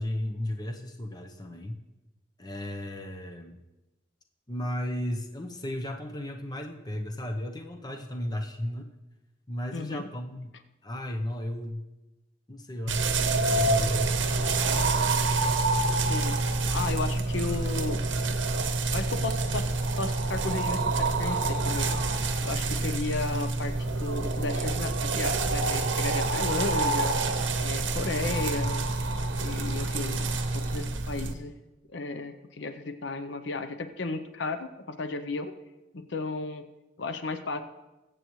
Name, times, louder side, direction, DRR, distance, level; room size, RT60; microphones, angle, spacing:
voice 1, 0.0-1.8 2.4-3.6 4.5-8.9 9.5-10.5 10.8-11.8 12.5-15.3 28.2-28.7, left 1 dB, 20° left, 4 dB, 0.8 m, -35 dB
voice 2, 9.7-10.0 16.1-16.4 16.7-18.0 18.9-19.7 20.0-22.0 22.4-23.7 24.0-27.1 27.6-28.9 29.4-31.5 31.9-35.5 35.9-36.6 37.0-37.6, left 3 dB, 70° left, 9 dB, 0.7 m, -34 dB
sound 1, 12.9-31.3, right 3 dB, 75° right, 0.9 m, -27 dB
22.0 x 7.8 x 3.1 m, 1.1 s
head